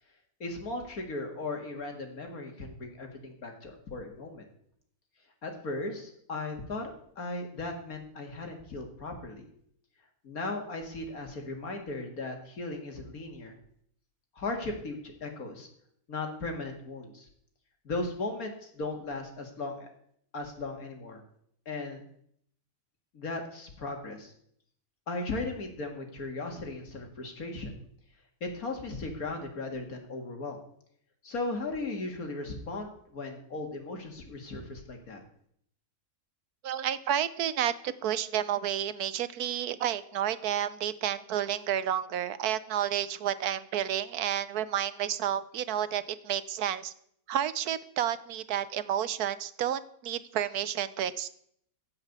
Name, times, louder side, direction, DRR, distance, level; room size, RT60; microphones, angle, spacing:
voice 1, 0.4-4.5 5.4-9.4 10.2-13.6 14.3-15.7 16.1-17.3 17.8-19.9 20.3-21.2 21.7-22.0 23.1-24.3 25.1-27.8 28.4-30.6 31.2-35.2, left 2 dB, 70° left, 3 dB, 2.5 m, -37 dB
voice 2, 36.6-46.9 47.3-51.3, right 10 dB, 85° right, 14 dB, 1.3 m, -31 dB
16.0 x 5.7 x 8.1 m, 0.69 s
omnidirectional pair, 1.6 m